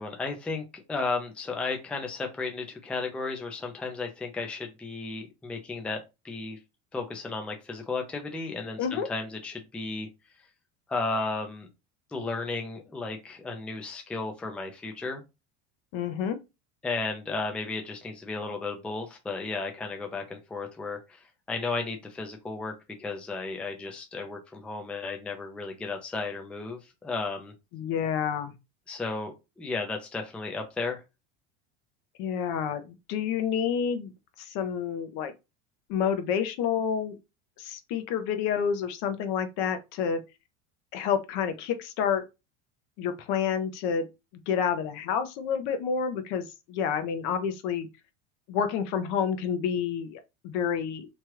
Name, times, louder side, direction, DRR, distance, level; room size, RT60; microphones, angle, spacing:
voice 1, 0.0-6.6 6.9-10.1 10.9-11.7 12.1-15.2 16.8-22.7 23.0-27.5 28.9-31.0, left 3 dB, 5° left, 0.4 m, -34 dB
voice 2, 15.9-16.4 27.7-28.5 32.2-34.1 34.4-35.3 35.9-37.2 37.6-40.2 40.9-42.2 43.0-44.1 44.5-47.9 48.5-51.1, left 7 dB, 60° left, 0.7 m, -29 dB
3.0 x 2.3 x 3.1 m
supercardioid pair, 135°, 34 cm